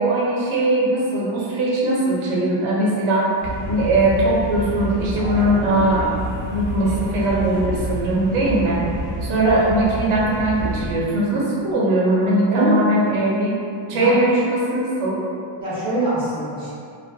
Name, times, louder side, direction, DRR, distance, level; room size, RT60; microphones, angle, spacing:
voice 1, 0.0-3.3 3.7-6.1 6.5-8.8 9.2-13.5 13.9-15.2, right 1 dB, 75° right, -5 dB, 0.6 m, -20 dB
sound 1, 3.4-10.9, equal, 75° left, 1.1 m, -28 dB
voice 2, 12.5-12.8 13.9-14.2 15.6-16.7, right 1 dB, 10° right, -12 dB, 0.6 m, -23 dB
2.5 x 2.2 x 2.3 m, 2.4 s
cardioid pair, 165°, 49 cm